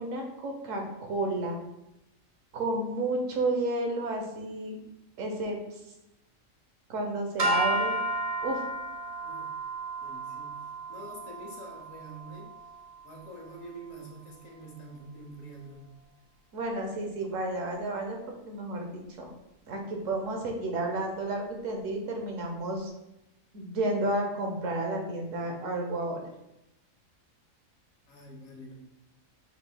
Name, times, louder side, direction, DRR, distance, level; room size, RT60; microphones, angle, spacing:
voice 1, 0.0-1.6 2.5-4.8 5.2-5.6 6.9-8.0 8.4-8.6 16.5-19.3 19.7-22.9 23.5-26.2, right 2 dB, 75° right, 2 dB, 1.2 m, -31 dB
sound 1, 7.4-13.7, right 2 dB, 45° right, 0.5 m, -33 dB
voice 2, 10.0-12.5 13.0-15.8 28.1-28.7, right 1 dB, 80° left, 0 dB, 1.3 m, -46 dB
5.9 x 3.5 x 2.2 m, 0.89 s
omnidirectional pair, 1.4 m